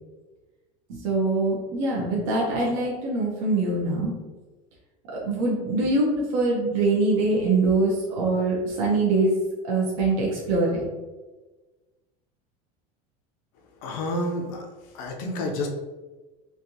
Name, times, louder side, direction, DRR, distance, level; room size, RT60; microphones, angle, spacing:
voice 1, 0.9-4.1 5.2-9.3 9.6-10.8, right 2 dB, 80° right, -4 dB, 0.9 m, -23 dB
voice 2, 13.8-14.6 14.9-15.7, left 1 dB, 70° left, 2 dB, 0.7 m, -29 dB
3.4 x 2.6 x 2.8 m, 1.2 s
supercardioid pair, 145°, 18 cm